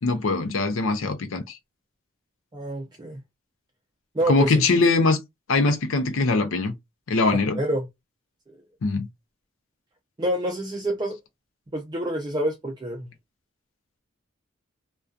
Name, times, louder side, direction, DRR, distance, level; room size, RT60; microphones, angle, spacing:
voice 1, 0.0-1.6 4.3-5.2 5.5-6.7 7.1-7.6 8.8-9.1, left 3 dB, 75° left, 0.5 m, -22 dB
voice 2, 2.5-3.2 4.1-4.6 7.3-7.9 10.2-11.2 11.7-13.1, right 1 dB, 20° right, 0.4 m, -27 dB
2.5 x 2.2 x 2.2 m
head